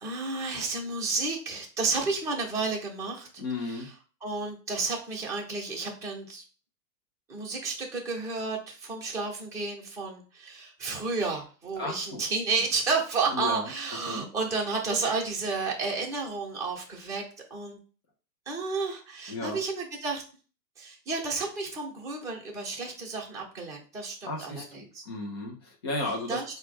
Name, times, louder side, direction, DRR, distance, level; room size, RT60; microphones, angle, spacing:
voice 1, 0.0-3.9 4.2-6.4 7.3-17.2 17.5-17.8 18.5-20.2 20.8-25.0 26.3-26.4, right 4 dB, 5° right, -5 dB, 0.9 m, -31 dB
voice 2, 3.4-3.9 11.8-12.2 13.3-13.7 14.1-14.2 19.3-19.6 24.2-26.4, left 2 dB, 20° left, 0 dB, 0.3 m, -34 dB
4.3 x 2.2 x 4.2 m, 0.38 s
hypercardioid pair, 130°, 49 cm